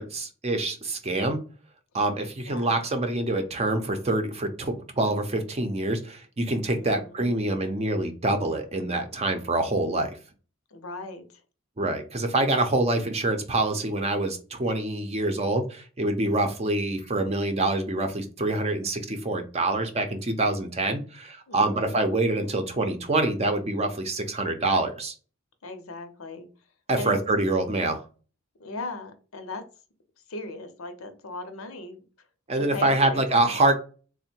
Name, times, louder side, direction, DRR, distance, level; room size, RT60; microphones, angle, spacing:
voice 1, 0.0-1.4 1.9-10.1 11.8-25.1 26.9-28.0 32.5-33.8, right 2 dB, 30° right, 6 dB, 0.6 m, -26 dB
voice 2, 6.7-7.3 10.7-11.2 21.5-21.9 25.6-26.5 26.9-27.2 28.6-29.6 30.3-32.0 32.5-33.6, left 2 dB, 85° left, 7 dB, 0.7 m, -38 dB
3.7 x 2.1 x 4.3 m, 0.36 s
head